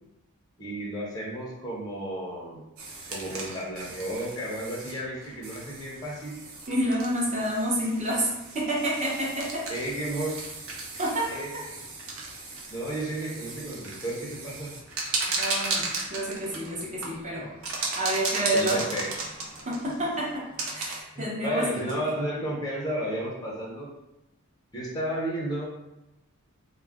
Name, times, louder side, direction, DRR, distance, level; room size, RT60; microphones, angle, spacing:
voice 1, 0.6-2.6 3.1-6.4 9.7-10.3 11.3-11.8 12.7-14.7 18.5-19.1 21.2-23.9 24.7-25.7, right 1 dB, 20° left, -5 dB, 0.6 m, -33 dB
sound 1, 2.8-21.0, right 3 dB, 65° right, 0.5 m, -36 dB
voice 2, 6.7-9.6 11.0-11.3 15.4-17.5 18.0-18.8 19.7-20.4 20.8-21.8, right 1 dB, 35° right, -5 dB, 0.8 m, -28 dB
2.3 x 2.1 x 3.4 m, 0.95 s
head